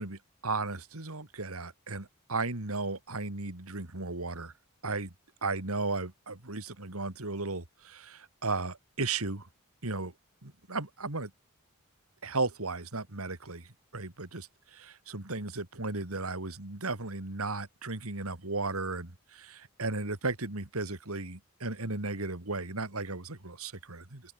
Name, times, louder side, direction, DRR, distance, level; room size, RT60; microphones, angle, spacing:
voice 1, 0.0-4.5 4.8-5.1 5.4-9.5 9.8-10.1 10.4-11.3 12.2-13.7 13.9-24.2, right 3 dB, 70° right, 2.7 m, -35 dB
open air
head